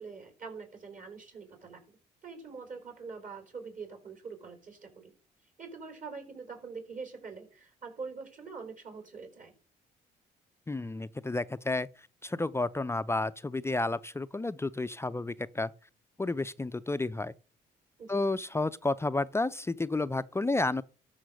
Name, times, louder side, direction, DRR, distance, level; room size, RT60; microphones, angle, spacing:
voice 1, 0.0-2.0 2.2-5.1 5.6-9.5 18.0-18.2, right 5 dB, 45° right, 4.5 m, -44 dB
voice 2, 10.7-11.9 12.2-15.7 16.2-17.3 18.1-20.8, left 2 dB, 15° left, 0.4 m, -31 dB
12.5 x 5.8 x 6.5 m
cardioid pair, 80°, 18 cm